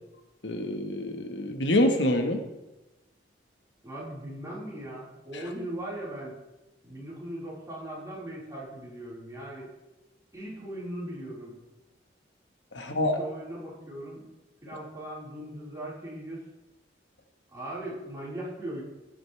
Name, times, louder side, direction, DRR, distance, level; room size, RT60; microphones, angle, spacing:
voice 1, 0.4-2.4 5.3-5.4 12.7-13.2, left 1 dB, 85° left, 5 dB, 1.5 m, -26 dB
voice 2, 3.8-6.4 6.8-9.7 10.3-11.6 12.8-14.3 14.6-16.4 17.5-18.8, right 1 dB, 20° right, -7 dB, 4.8 m, -39 dB
16.0 x 9.1 x 3.4 m, 1.0 s
head